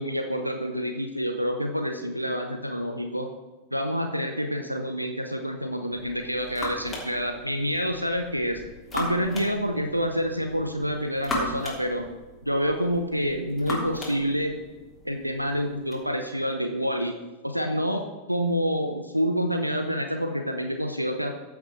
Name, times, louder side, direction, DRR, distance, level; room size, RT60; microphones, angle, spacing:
voice 1, 0.0-3.3 3.7-8.6 8.9-12.0 12.5-14.6 15.0-17.1 17.4-18.0 18.3-21.3, equal, 90° right, 5 dB, 0.8 m, -27 dB
sound 1, 5.9-16.0, left 1 dB, 15° left, 3.2 m, -38 dB
15.0 x 5.9 x 4.5 m, 1.2 s
figure-of-eight pair, 90°, 0 cm